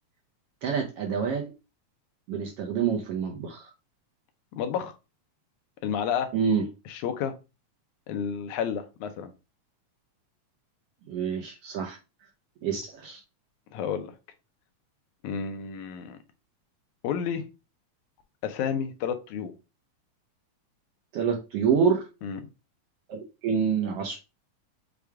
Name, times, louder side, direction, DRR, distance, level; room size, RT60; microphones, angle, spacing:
voice 1, 0.6-1.5 2.3-3.7 6.3-6.7 11.1-12.0 12.6-13.2 21.1-22.1 23.1-24.2, right 6 dB, 75° right, 1.4 m, -27 dB
voice 2, 4.5-5.0 5.8-6.3 6.9-7.3 8.1-9.3 13.7-14.1 15.2-16.2 17.0-17.4 18.4-19.5 22.2-22.4, left 7 dB, 85° left, 2.1 m, -30 dB
6.4 x 2.3 x 3.4 m
omnidirectional pair, 3.3 m